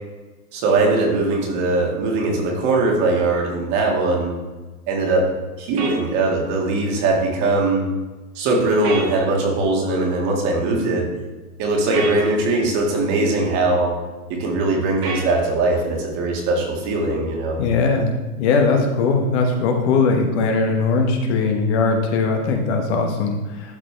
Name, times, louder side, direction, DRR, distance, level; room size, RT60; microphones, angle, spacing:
voice 1, 0.5-4.3 4.9-5.3 5.6-7.9 8.4-11.1 11.6-14.0 14.3-17.6, right 2 dB, 35° right, 0 dB, 1.9 m, -20 dB
sound 1, 5.8-6.0 8.8-9.1 11.9-12.2 15.0-15.3, right 4 dB, 75° right, 2.3 m, -28 dB
voice 2, 17.6-23.8, left 4 dB, 45° left, 3 dB, 1.2 m, -20 dB
12.0 x 4.2 x 3.3 m, 1.2 s
hypercardioid pair, 130°, 47 cm